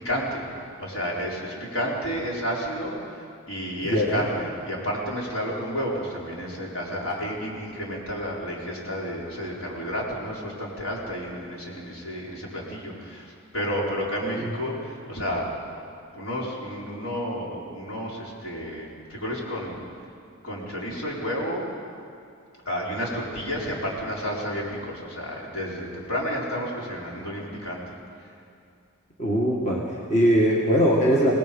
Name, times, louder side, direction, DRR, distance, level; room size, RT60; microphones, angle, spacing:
voice 1, 0.0-0.4 0.8-15.5 16.1-19.8 20.4-21.6 22.6-27.8 28.2-28.3, equal, 65° left, -4 dB, 4.9 m, -31 dB
voice 2, 3.8-4.2 14.4-14.5 29.2-31.4, equal, 30° left, -3 dB, 2.0 m, -21 dB
26.5 x 19.5 x 5.5 m, 2.4 s
head